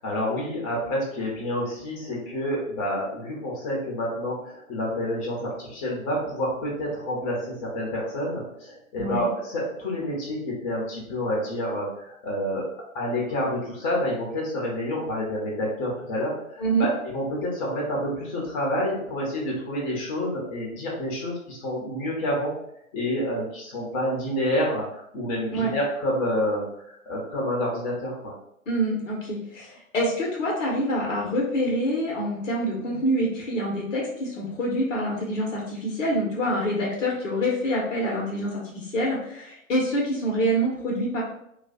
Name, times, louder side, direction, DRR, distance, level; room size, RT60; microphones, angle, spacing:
voice 1, 0.0-12.7 12.9-22.5 22.9-28.3, equal, 30° left, -3 dB, 1.2 m, -28 dB
voice 2, 9.0-9.3 16.6-16.9 25.5-25.7 28.7-41.2, equal, 65° left, -3 dB, 1.2 m, -26 dB
2.7 x 2.3 x 4.1 m, 0.75 s
figure-of-eight pair, 110°, 41 cm